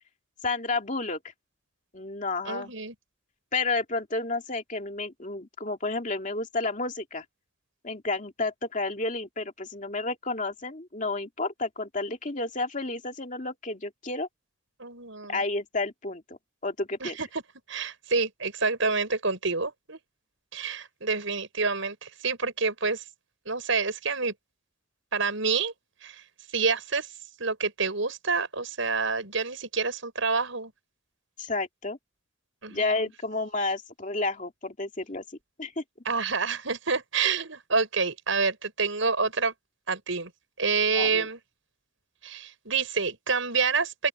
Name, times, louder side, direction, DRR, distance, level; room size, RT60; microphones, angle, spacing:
voice 1, 0.4-1.2 1.9-2.7 3.5-7.2 7.8-14.3 15.3-16.4 16.6-17.2 31.4-32.0 32.7-35.2 35.6-35.8 40.9-41.3, left 3 dB, 40° left, 2.5 m, -31 dB
voice 2, 2.5-2.9 14.8-15.4 17.0-17.4 17.7-20.0 20.5-23.0 23.5-24.3 25.1-25.7 26.0-26.2 26.5-27.1 27.4-30.7 32.6-33.1 36.1-39.5 39.9-40.3 40.6-41.4 42.2-44.1, right 4 dB, 70° right, 5.8 m, -28 dB
open air
head